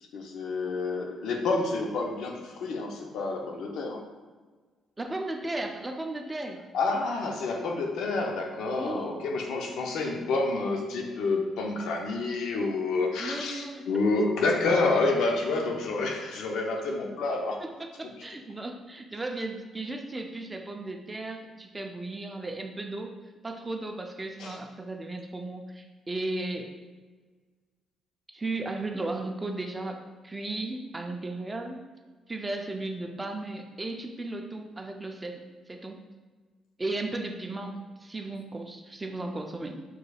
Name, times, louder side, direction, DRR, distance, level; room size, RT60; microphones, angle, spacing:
voice 1, 0.1-4.0 6.7-17.6 24.4-24.6, left 3 dB, 75° left, 2 dB, 0.6 m, -28 dB
voice 2, 5.0-6.6 8.8-9.2 13.2-14.0 16.9-17.0 17.6-23.1 23.4-26.7 28.3-31.8 32.3-36.0 36.8-39.8, right 2 dB, 20° right, 4 dB, 0.6 m, -35 dB
4.9 x 3.9 x 2.3 m, 1.4 s
supercardioid pair, 70°, 0 cm